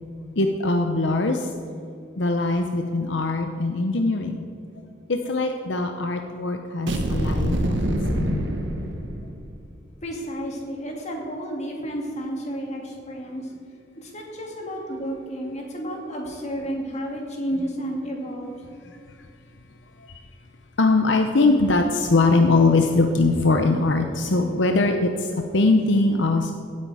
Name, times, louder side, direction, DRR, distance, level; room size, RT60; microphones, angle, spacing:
voice 1, 0.4-1.5 2.2-4.4 5.1-7.8 8.1-8.5 20.0-20.1 20.8-26.5, left 3 dB, 75° left, 5 dB, 0.8 m, -21 dB
sound 1, 6.9-9.6, right 1 dB, 85° right, 1.2 m, -25 dB
voice 2, 10.0-13.5 14.0-18.5, equal, 40° left, 0 dB, 2.4 m, -31 dB
16.0 x 8.7 x 4.8 m, 2.5 s
head